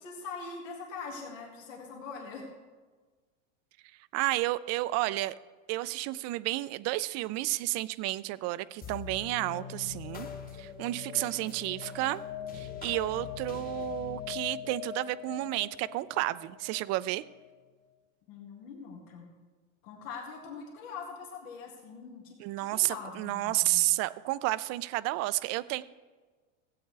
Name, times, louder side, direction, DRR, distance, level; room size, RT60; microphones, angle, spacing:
voice 1, 0.0-2.5 18.3-19.3 19.8-23.8, left 5 dB, 85° left, -1 dB, 2.2 m, -43 dB
voice 2, 4.1-5.4 5.7-10.3 10.6-12.2 12.5-17.2 22.4-25.8, right 18 dB, 45° right, 17 dB, 0.4 m, -31 dB
sound 1, 8.8-17.5, left 8 dB, 25° left, 1.1 m, -42 dB
16.0 x 8.6 x 3.3 m, 1.4 s
supercardioid pair, 120°, 38 cm